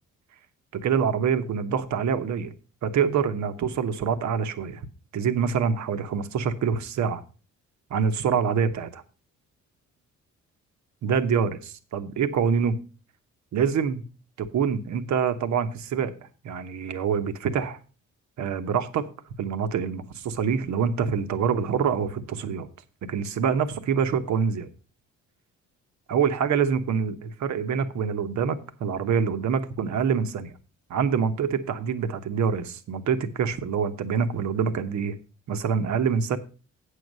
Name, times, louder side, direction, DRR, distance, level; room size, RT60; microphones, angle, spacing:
voice 1, 0.8-2.5 2.8-4.8 5.1-7.2 7.9-9.0 11.0-12.8 13.5-14.0 14.4-16.1 16.4-17.8 18.4-19.1 19.4-22.7 23.1-24.7 26.1-30.5 30.9-35.2 35.5-36.4, right 6 dB, 70° right, 9 dB, 1.1 m, -25 dB
8.4 x 6.5 x 5.3 m, 0.36 s
cardioid pair, 90°, 30 cm